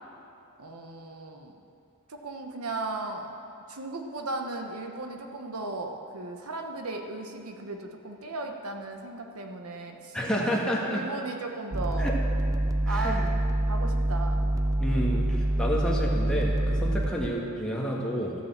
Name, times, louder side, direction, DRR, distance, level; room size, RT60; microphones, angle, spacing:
voice 1, 0.6-1.6 2.1-3.3 3.7-12.2 12.9-14.4 14.9-15.1, right 2 dB, 80° right, 4 dB, 1.1 m, -36 dB
voice 2, 10.1-11.0 12.0-12.1 12.8-13.3 14.8-15.2 15.6-18.3, equal, 5° left, -4 dB, 1.6 m, -29 dB
sound 1, 11.7-17.3, right 1 dB, 15° right, 0.5 m, -26 dB
13.5 x 6.6 x 7.3 m, 2.7 s
head